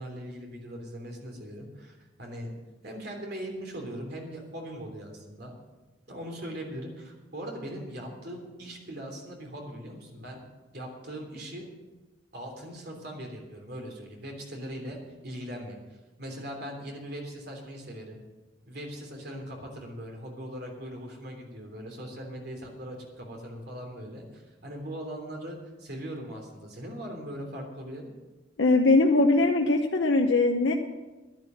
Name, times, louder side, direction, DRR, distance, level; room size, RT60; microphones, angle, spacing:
voice 1, 0.0-2.5 2.8-5.5 6.1-10.4 10.7-11.6 12.3-15.0 15.2-15.8 16.2-18.2 18.7-28.1, equal, 55° right, 1 dB, 3.3 m, -40 dB
voice 2, 28.6-30.7, left 2 dB, 70° left, 2 dB, 0.9 m, -21 dB
11.0 x 11.0 x 7.7 m, 1.2 s
head